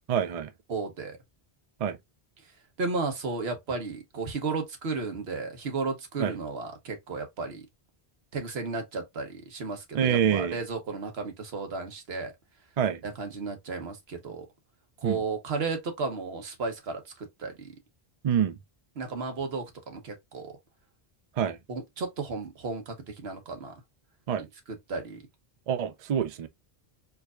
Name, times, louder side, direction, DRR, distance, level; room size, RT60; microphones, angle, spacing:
voice 1, 0.1-0.5 1.8-2.0 6.2-6.4 9.9-10.6 12.8-13.0 15.0-15.2 18.2-18.6 21.4-21.6 24.3-24.5 25.7-26.5, right 8 dB, 50° right, 0.5 m, -26 dB
voice 2, 0.7-1.2 2.8-7.7 8.3-12.3 13.0-14.5 15.0-17.8 19.0-20.6 21.7-23.7 24.7-25.2, right 4 dB, 85° right, 1.2 m, -34 dB
4.6 x 2.6 x 2.3 m
omnidirectional pair, 1.0 m